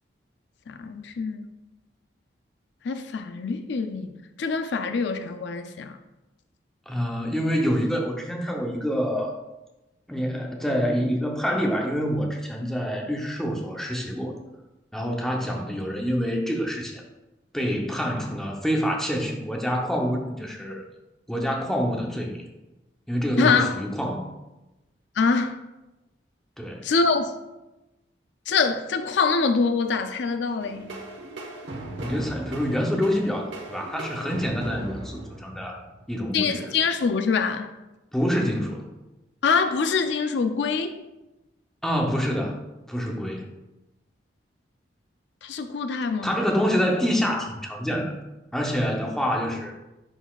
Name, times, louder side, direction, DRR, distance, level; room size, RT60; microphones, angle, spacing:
voice 1, 0.7-1.5 2.8-4.1 4.4-6.0 23.4-23.8 25.2-25.6 26.8-27.3 28.5-30.9 36.3-37.7 39.4-40.9 45.4-46.3, left 5 dB, 75° left, 8 dB, 0.4 m, -24 dB
voice 2, 6.9-9.4 10.1-14.4 14.9-17.0 17.5-20.8 21.3-22.4 23.1-24.3 26.6-26.8 32.0-35.8 36.1-36.7 38.1-38.9 41.8-42.6 42.9-43.5 46.2-48.1 48.5-49.7, equal, 5° left, 0 dB, 0.7 m, -26 dB
sound 1, 30.6-36.1, right 1 dB, 90° right, 1.0 m, -38 dB
9.9 x 4.0 x 2.3 m, 1.0 s
head